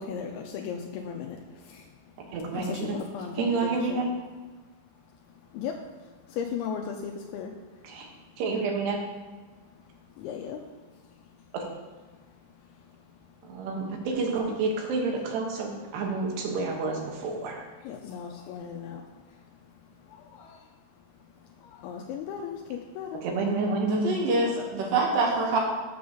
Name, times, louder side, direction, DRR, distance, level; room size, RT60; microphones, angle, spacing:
voice 1, 0.0-4.1 5.2-8.4 9.5-11.4 12.1-13.5 14.3-14.4 15.9-16.0 17.8-23.3, left 7 dB, 85° left, 2 dB, 2.5 m, -39 dB
voice 2, 2.3-3.0 3.4-4.1 7.8-8.1 8.4-9.0 11.5-11.6 13.5-17.6 23.2-24.2, right 3 dB, 85° right, 1 dB, 3.4 m, -29 dB
voice 3, 23.8-25.6, right 3 dB, 65° right, -2 dB, 3.0 m, -25 dB
7.7 x 5.3 x 6.6 m, 1.3 s
omnidirectional pair, 4.7 m